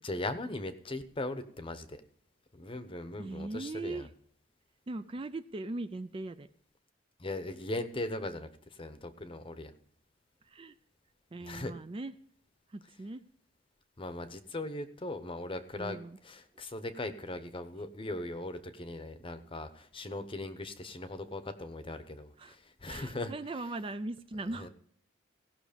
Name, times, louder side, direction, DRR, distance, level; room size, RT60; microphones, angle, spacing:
voice 1, 0.0-2.0 2.5-4.1 7.2-9.7 11.4-11.7 14.0-16.0 16.2-23.3 24.5-24.7, left 2 dB, 25° left, 10 dB, 0.9 m, -39 dB
voice 2, 3.2-4.1 4.9-6.5 10.4-10.8 11.3-12.1 12.7-13.2 15.8-16.2 22.4-22.6 22.9-24.7, right 2 dB, 25° right, 11 dB, 0.4 m, -39 dB
17.0 x 6.1 x 5.1 m, 0.62 s
head